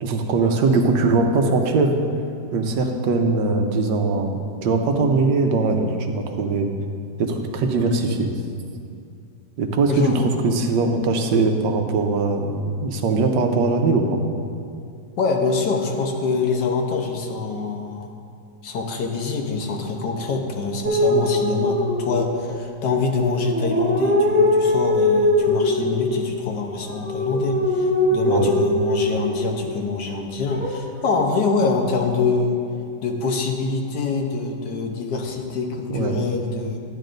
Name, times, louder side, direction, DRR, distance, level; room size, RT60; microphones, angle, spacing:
voice 1, 0.0-1.9 2.5-6.7 7.2-8.3 9.6-14.2 28.2-28.5 35.9-36.1, right 3 dB, 90° right, 4 dB, 1.4 m, -21 dB
voice 2, 9.9-10.3 15.2-18.1 18.6-32.6 33.0-36.8, left 4 dB, 75° left, 2 dB, 1.5 m, -25 dB
sound 1, 20.8-22.5 23.3-26.0 26.8-29.4 30.5-31.1, left 1 dB, 35° right, 1.9 m, -21 dB
12.0 x 9.8 x 2.6 m, 2.4 s
omnidirectional pair, 1.8 m